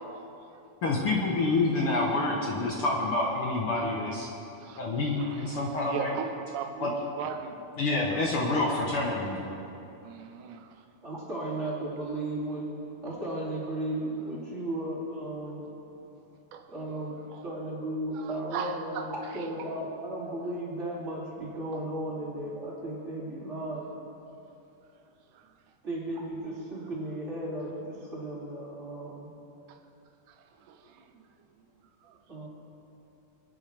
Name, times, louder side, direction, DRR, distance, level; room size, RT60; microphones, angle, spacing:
voice 1, 0.8-4.3 4.8-6.1 6.8-6.9 7.8-9.6, left 2 dB, 60° left, -2 dB, 1.6 m, -27 dB
voice 2, 5.2-7.7 10.0-10.8 16.5-16.7 17.3-17.5 18.1-19.5 21.7-21.9 25.3-25.6 29.7-29.8 30.3-31.3 31.6-31.7 32.0-32.2, right 7 dB, 80° right, 6 dB, 2.3 m, -40 dB
voice 3, 11.0-12.7 13.0-15.7 16.7-24.0 25.8-29.3 32.3-32.5, right 1 dB, 20° right, -7 dB, 2.8 m, -35 dB
24.5 x 10.0 x 3.4 m, 2.8 s
omnidirectional pair, 3.7 m